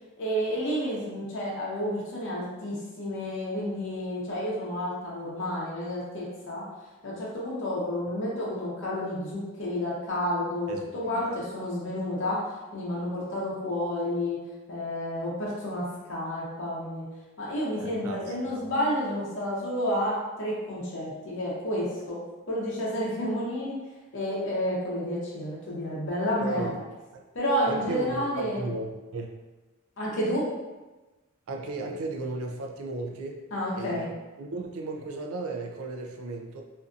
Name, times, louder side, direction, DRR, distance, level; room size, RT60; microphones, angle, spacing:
voice 1, 0.2-6.6 7.0-12.4 12.7-14.4 14.7-17.0 17.4-22.2 22.5-23.8 24.1-26.7 27.3-28.7 30.0-30.5 33.5-34.1, equal, 60° left, -6 dB, 0.7 m, -30 dB
voice 2, 10.7-11.4 17.8-18.7 26.4-26.8 27.1-27.2 27.7-29.3 31.5-33.4 33.7-34.1 34.4-36.6, right 3 dB, 80° right, 2 dB, 0.4 m, -35 dB
2.6 x 2.5 x 2.4 m, 1.1 s
head